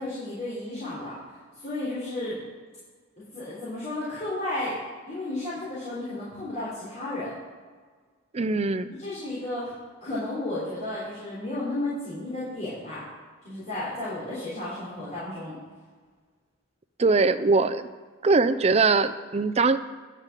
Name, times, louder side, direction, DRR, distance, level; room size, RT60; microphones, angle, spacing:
voice 1, 0.0-2.4 3.3-4.8 5.1-7.3 8.9-13.1 13.4-15.6, left 2 dB, 40° left, -10 dB, 3.5 m, -33 dB
voice 2, 8.3-8.9 17.0-17.8 18.2-19.8, right 3 dB, 35° right, 11 dB, 0.5 m, -21 dB
10.5 x 5.9 x 7.3 m, 1.5 s
head